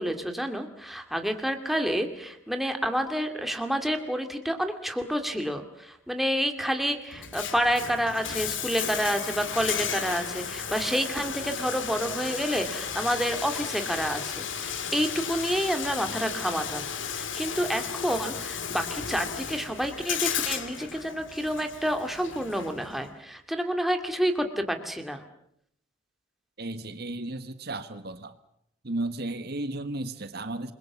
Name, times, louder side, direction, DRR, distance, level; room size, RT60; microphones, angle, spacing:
voice 1, 0.0-16.9 17.1-25.2, equal, ahead, 5 dB, 2.3 m, -29 dB
Bathtub (filling or washing), 7.1-23.1, left 7 dB, 75° left, 2.3 m, -34 dB
voice 2, 26.6-28.3 28.8-30.7, right 2 dB, 55° right, 10 dB, 1.4 m, -34 dB
28.0 x 21.5 x 7.3 m, 0.72 s
head